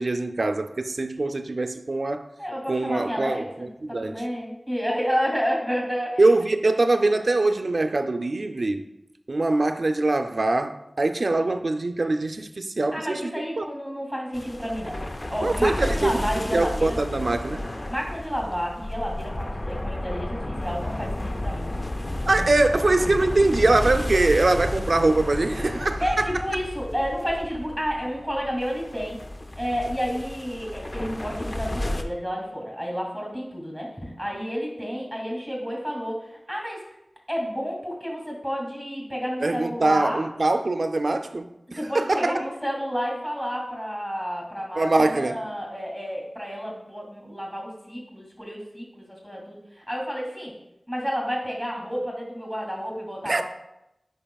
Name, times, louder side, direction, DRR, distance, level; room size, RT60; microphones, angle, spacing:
voice 1, 0.0-2.2 2.7-4.1 6.2-8.8 9.3-13.6 15.4-17.6 22.3-26.3 39.4-42.4 44.7-45.4 53.3-53.4, right 2 dB, 65° right, 0.4 m, -23 dB
voice 2, 2.4-6.2 12.9-17.0 17.9-21.7 26.0-29.2 29.6-36.8 37.3-40.2 41.7-50.5 50.9-53.4, equal, 10° left, 2.4 m, -30 dB
sound 1, 14.3-32.0, left 1 dB, 40° left, 0.5 m, -32 dB
8.8 x 5.3 x 2.3 m
wide cardioid pair, 55°, 0 cm